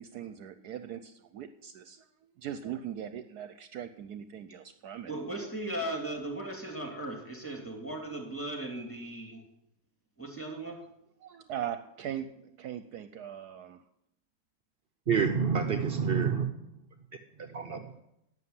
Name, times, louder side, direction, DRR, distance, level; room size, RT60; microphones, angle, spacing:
voice 1, 0.0-2.1 2.4-5.1 10.8-10.9 11.2-13.8, right 10 dB, 70° right, 10 dB, 1.1 m, -40 dB
voice 2, 5.0-9.4 10.2-10.8, right 1 dB, 5° left, 2 dB, 2.8 m, -37 dB
voice 3, 15.1-16.7 17.4-18.0, right 6 dB, 55° right, 6 dB, 0.7 m, -28 dB
11.5 x 7.9 x 9.6 m, 0.83 s
omnidirectional pair, 1.9 m